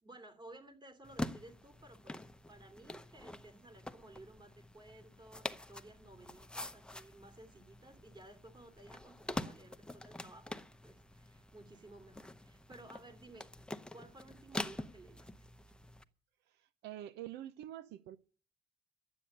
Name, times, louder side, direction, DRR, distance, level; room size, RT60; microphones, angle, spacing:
voice 1, 0.0-13.5 13.9-15.3, right 2 dB, 25° right, 3.0 m, -56 dB
sound 1, 1.0-16.0, left 1 dB, 5° left, 0.8 m, -46 dB
voice 2, 16.5-18.2, right 12 dB, 80° right, 0.8 m, -47 dB
12.0 x 8.3 x 8.8 m
cardioid pair, 110°, 17 cm